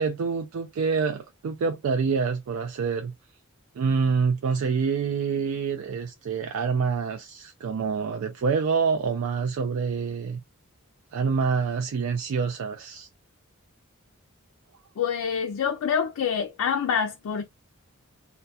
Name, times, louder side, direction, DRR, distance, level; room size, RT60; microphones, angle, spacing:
voice 1, 0.0-3.1 3.8-10.4 11.1-13.1, right 5 dB, 70° right, 0.3 m, -26 dB
voice 2, 15.0-17.4, left 7 dB, 85° left, 0.4 m, -26 dB
2.2 x 2.1 x 2.7 m
head